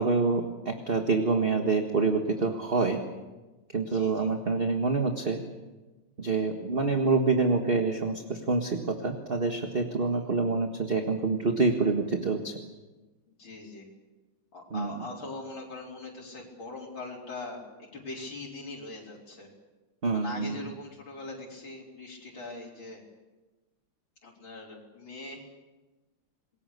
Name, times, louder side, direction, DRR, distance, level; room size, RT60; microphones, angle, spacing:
voice 1, 0.0-3.0 3.7-5.4 6.2-12.5 14.7-14.9 20.0-20.5, right 4 dB, 30° right, 4 dB, 1.6 m, -26 dB
voice 2, 3.9-4.3 10.1-10.3 13.3-13.9 14.5-19.5 20.1-23.0 24.2-25.5, left 3 dB, 65° left, -4 dB, 5.2 m, -42 dB
27.5 x 21.5 x 6.8 m, 1.1 s
omnidirectional pair, 2.3 m